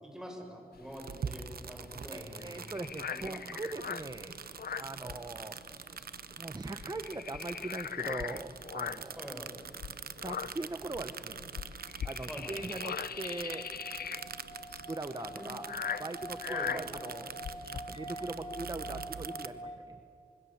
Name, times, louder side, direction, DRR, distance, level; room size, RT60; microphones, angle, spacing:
voice 1, 0.0-2.8 3.1-3.3 5.0-5.1 9.2-9.5 12.3-12.6 15.3-15.5 16.5-16.8, equal, 5° right, 1 dB, 6.9 m, -45 dB
sound 1, 0.8-5.7 6.0-6.2 6.5-9.2 9.7-17.8, left 7 dB, 80° left, 0.7 m, -40 dB
sound 2, 0.9-19.5, right 6 dB, 75° right, 0.9 m, -45 dB
voice 2, 1.9-4.3 4.8-5.6 5.9-6.0 6.4-9.3 10.2-11.5 12.0-13.7 14.9-15.7 16.0-17.3 17.7-20.0, right 2 dB, 25° right, 9 dB, 1.2 m, -41 dB
sound 3, 11.5-19.8, equal, 30° left, 4.4 m, -46 dB
26.0 x 23.5 x 7.4 m, 2.3 s
wide cardioid pair, 75°, 16 cm